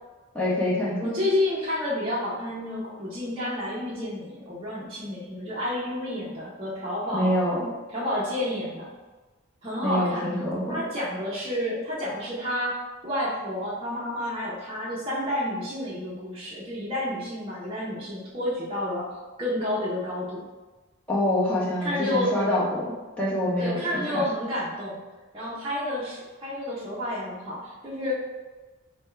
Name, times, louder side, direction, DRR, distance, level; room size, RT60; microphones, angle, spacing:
voice 1, 0.3-1.1 7.1-7.6 9.8-10.8 21.1-23.8, left 1 dB, 5° left, -7 dB, 0.9 m, -25 dB
voice 2, 1.0-7.3 7.9-8.9 9.6-10.2 10.7-12.7 13.0-19.1 19.4-20.4 21.8-22.4 23.6-25.0 25.3-28.4, left 1 dB, 25° right, -8 dB, 0.7 m, -30 dB
3.5 x 2.3 x 4.4 m, 1.2 s
head